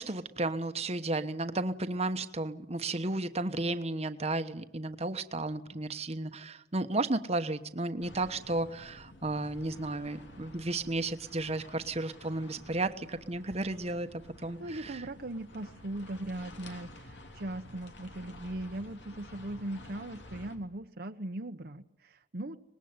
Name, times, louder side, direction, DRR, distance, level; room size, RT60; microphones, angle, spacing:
voice 1, 0.0-14.1 14.4-15.0, right 2 dB, 35° right, 9 dB, 1.2 m, -33 dB
sound 1, 8.0-20.6, left 1 dB, 80° left, 3.1 m, -51 dB
voice 2, 14.6-22.6, right 1 dB, 60° right, 6 dB, 1.0 m, -39 dB
24.5 x 20.5 x 9.6 m, 0.81 s
head